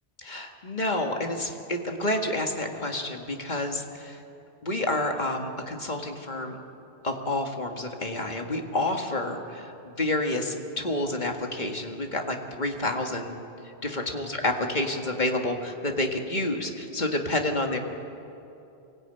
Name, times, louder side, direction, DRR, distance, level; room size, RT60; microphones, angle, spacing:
voice 1, 0.2-4.2 4.6-6.6 7.0-13.4 13.8-17.8, left 1 dB, 45° left, 3 dB, 2.0 m, -29 dB
23.5 x 17.0 x 9.1 m, 2.8 s
omnidirectional pair, 1.1 m